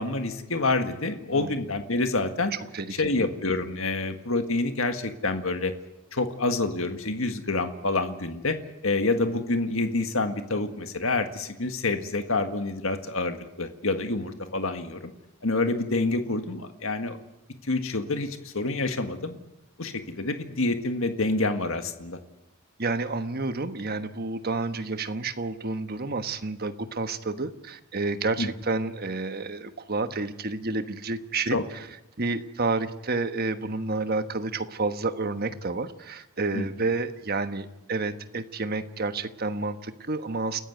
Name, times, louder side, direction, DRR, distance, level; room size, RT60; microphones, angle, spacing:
voice 1, 0.0-2.5 3.0-5.7 6.1-8.6 8.8-15.1 15.4-17.2 17.6-19.4 19.8-22.2 28.4-28.5 31.5-31.6 36.5-36.6, left 2 dB, 65° left, 7 dB, 1.8 m, -27 dB
voice 2, 2.5-3.3 22.8-31.9 32.2-40.6, right 3 dB, 45° right, 9 dB, 1.2 m, -30 dB
29.5 x 14.5 x 9.4 m, 0.91 s
head